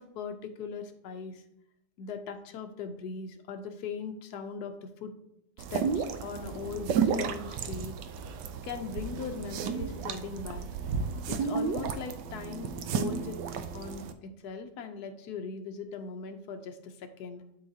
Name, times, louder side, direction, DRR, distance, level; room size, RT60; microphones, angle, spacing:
voice 1, 0.0-1.4 2.0-5.1 5.7-7.9 8.6-10.6 11.3-13.4 13.7-17.5, left 5 dB, 70° left, 5 dB, 1.3 m, -39 dB
sound 1, 5.6-14.1, right 6 dB, 90° right, 1.3 m, -33 dB
12.0 x 4.0 x 2.8 m, 0.82 s
omnidirectional pair, 1.9 m